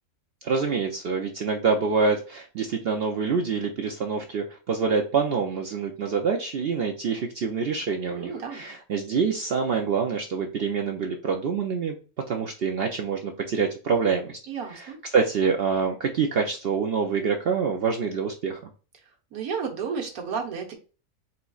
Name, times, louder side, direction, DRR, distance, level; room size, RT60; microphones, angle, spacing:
voice 1, 0.4-12.0 12.3-14.4 14.7-18.7, right 5 dB, 65° right, 3 dB, 0.6 m, -26 dB
voice 2, 8.1-8.6 14.5-15.0 19.3-20.7, right 6 dB, 90° right, 2 dB, 1.4 m, -32 dB
4.3 x 4.0 x 2.3 m, 0.35 s
omnidirectional pair, 1.5 m